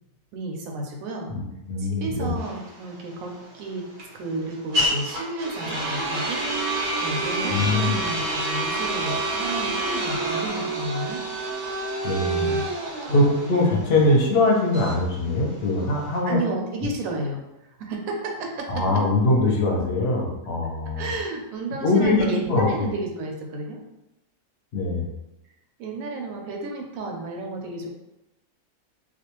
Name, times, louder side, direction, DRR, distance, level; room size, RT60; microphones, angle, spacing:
voice 1, 0.3-1.3 1.8-3.9 4.1-11.2 12.2-12.7 13.0-13.2 16.2-17.4 17.8-19.0 21.0-23.8 25.8-27.9, right 2 dB, 85° right, 1 dB, 1.0 m, -32 dB
voice 2, 1.7-2.3 7.5-8.0 12.0-12.5 13.1-16.4 18.7-21.1 21.8-22.7 24.7-25.0, left 2 dB, 55° left, -1 dB, 0.8 m, -22 dB
sound 1, 2.4-16.2, right 2 dB, 50° right, 0.6 m, -28 dB
2.5 x 2.2 x 2.9 m, 0.92 s
omnidirectional pair, 1.4 m